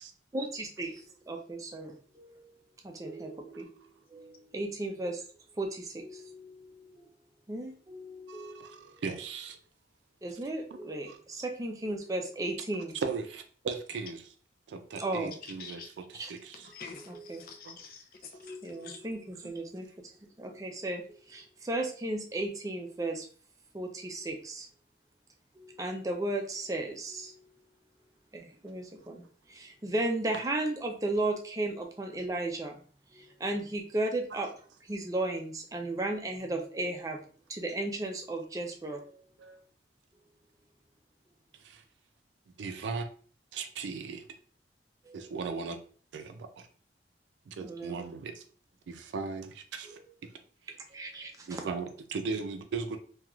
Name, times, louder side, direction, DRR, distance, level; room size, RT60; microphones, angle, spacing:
voice 1, 0.3-2.6 2.8-3.8 4.1-5.3 5.6-7.1 7.5-9.0 10.2-13.0 14.9-15.3 16.2-16.3 17.1-17.6 18.4-23.3 23.7-24.7 25.6-27.6 28.3-29.2 29.5-32.8 33.1-34.5 34.8-37.2 37.5-39.2 44.1-44.2 45.1-45.3 47.6-48.1 49.9-50.1 50.9-51.6, right 2 dB, 20° right, 3 dB, 0.4 m, -35 dB
voice 2, 8.3-9.6 11.1-11.2 13.0-14.3 14.7-16.7 17.6-17.8 19.4-19.6 39.4-39.6 41.6-41.8 42.6-43.1 43.5-44.2 45.1-45.8 46.1-46.7 47.5-48.4 48.9-50.3 51.5-53.0, right 4 dB, 85° right, 7 dB, 0.4 m, -38 dB
voice 3, 15.6-16.2 16.6-18.6 18.8-19.0, left 5 dB, 55° left, 4 dB, 0.5 m, -47 dB
3.0 x 2.3 x 2.3 m, 0.42 s
head